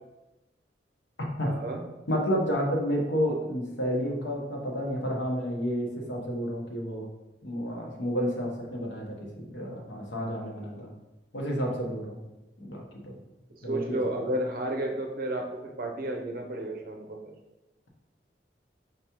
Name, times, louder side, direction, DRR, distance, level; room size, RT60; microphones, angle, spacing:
voice 1, 1.4-1.8 13.6-17.3, right 1 dB, 50° right, 1 dB, 0.6 m, -32 dB
voice 2, 2.1-7.1 7.4-10.9 11.3-12.2 12.6-13.2 13.6-14.0, equal, 85° left, -1 dB, 1.1 m, -30 dB
5.2 x 3.4 x 3.0 m, 1.0 s
head